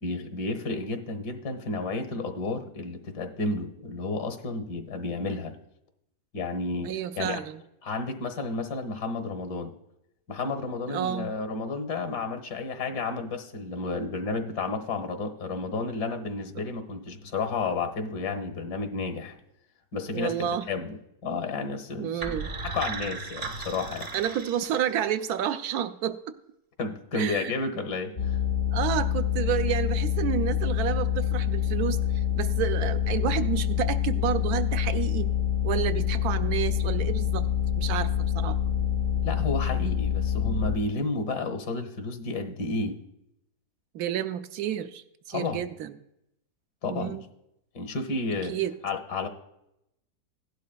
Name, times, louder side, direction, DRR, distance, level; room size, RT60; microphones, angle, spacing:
voice 1, 0.0-5.6 6.3-6.9 7.2-7.4 7.8-9.7 10.3-19.4 19.9-21.0 21.2-22.4 22.6-24.1 26.8-28.4 39.2-43.0 45.3-45.7 46.8-47.2 47.7-48.6 48.8-49.3, left 3 dB, 75° left, 7 dB, 1.7 m, -31 dB
voice 2, 6.8-7.6 10.9-11.3 16.5-16.6 20.1-20.6 22.0-22.5 24.1-26.2 27.1-27.6 28.7-32.0 32.4-35.3 35.6-37.5 37.8-38.6 43.9-45.9 46.8-47.2 48.5-48.7, right 10 dB, 70° right, 10 dB, 1.0 m, -30 dB
sound 1, 22.2-25.2, right 4 dB, 40° right, 1.0 m, -36 dB
sound 2, 28.2-40.8, left 10 dB, 50° left, 0.8 m, -26 dB
16.0 x 11.5 x 2.2 m, 0.83 s
omnidirectional pair, 1.8 m